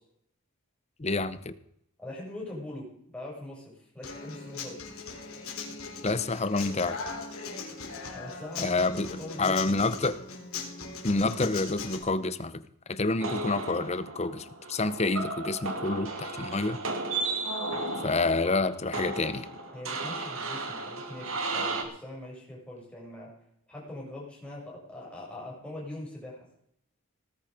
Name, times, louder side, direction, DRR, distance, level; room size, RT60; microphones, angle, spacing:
voice 1, 1.0-1.6 6.0-7.0 8.6-10.2 11.0-12.6 12.9-16.8 18.0-19.5, left 3 dB, 30° left, 14 dB, 0.8 m, -28 dB
voice 2, 2.0-4.8 8.1-10.0 19.7-23.3 23.7-26.4, left 1 dB, 5° left, -4 dB, 6.4 m, -42 dB
Human voice / Acoustic guitar, 4.0-12.0, left 4 dB, 75° left, 3.8 m, -39 dB
sound 1, 13.2-21.8, right 3 dB, 65° right, 2.5 m, -34 dB
18.5 x 10.5 x 5.0 m, 0.73 s
head